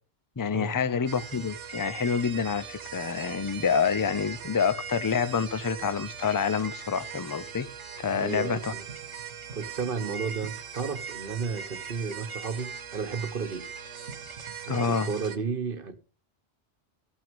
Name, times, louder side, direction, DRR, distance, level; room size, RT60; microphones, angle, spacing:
voice 1, 0.4-7.7 8.0-8.7 14.7-15.1, left 6 dB, 25° left, 0.5 m, -27 dB
sound 1, 1.1-15.4, right 6 dB, 75° right, 1.5 m, -40 dB
voice 2, 8.1-8.8 9.5-13.7 14.7-16.0, right 5 dB, 50° right, 1.3 m, -33 dB
13.5 x 6.3 x 5.2 m
omnidirectional pair, 1.2 m